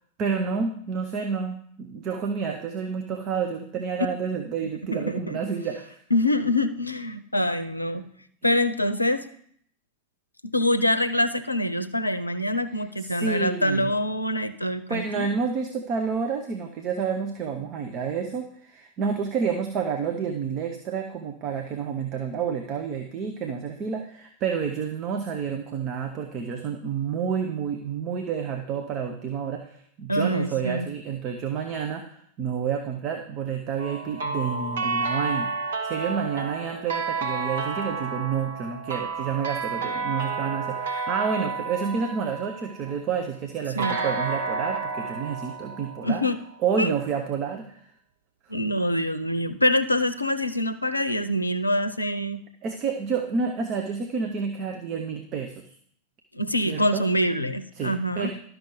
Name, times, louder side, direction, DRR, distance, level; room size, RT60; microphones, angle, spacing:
voice 1, 0.2-6.0 13.0-13.9 14.9-35.5 35.8-46.2 46.6-47.8 52.6-55.7 56.6-57.0 57.8-58.3, right 6 dB, 35° right, 4 dB, 1.0 m, -29 dB
voice 2, 6.1-8.0 8.4-9.2 10.4-15.3 30.1-30.9 43.8-44.0 46.0-46.4 46.8-46.9 48.5-52.4 56.3-58.3, left 1 dB, 85° left, 12 dB, 0.6 m, -25 dB
sound 1, 33.8-43.0 43.8-46.7, right 4 dB, 65° right, 1.2 m, -31 dB
12.0 x 6.2 x 5.1 m, 0.64 s
figure-of-eight pair, 90°, 0 cm